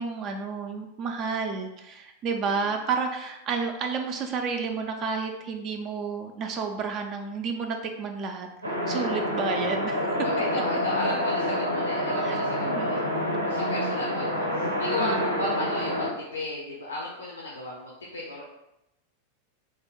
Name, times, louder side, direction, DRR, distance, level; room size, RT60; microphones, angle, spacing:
voice 1, 0.0-10.1 12.2-12.4 12.6-12.9 15.0-15.2, right 5 dB, 35° right, 4 dB, 0.3 m, -31 dB
sound 1, 8.6-16.1, equal, 85° right, 0.5 m, -27 dB
voice 2, 10.2-13.0 13.4-18.5, left 2 dB, 75° left, -4 dB, 0.5 m, -34 dB
3.2 x 2.2 x 3.6 m, 0.89 s
figure-of-eight pair, 90°, 0 cm